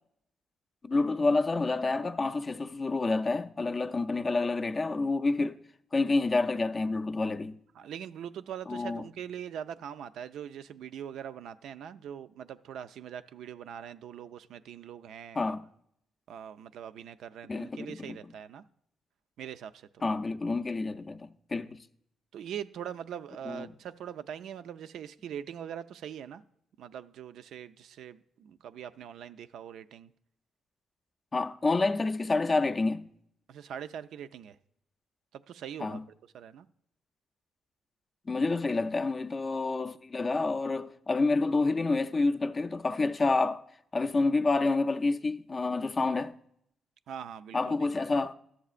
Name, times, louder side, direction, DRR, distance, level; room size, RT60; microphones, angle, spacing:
voice 1, 0.8-5.6 5.9-7.6 8.7-9.0 15.4-15.6 17.5-18.2 20.0-21.8 23.5-23.7 31.3-33.1 35.8-36.0 38.3-43.6 43.9-46.3 47.5-48.3, left 3 dB, 25° left, 0.3 m, -28 dB
voice 2, 7.7-15.4 16.3-18.6 19.4-20.0 22.3-26.4 26.8-30.1 33.5-34.6 35.3-36.0 36.3-36.7 47.1-47.9, right 9 dB, 80° right, 0.3 m, -42 dB
12.5 x 7.3 x 2.4 m
cardioid pair, 130°, 0 cm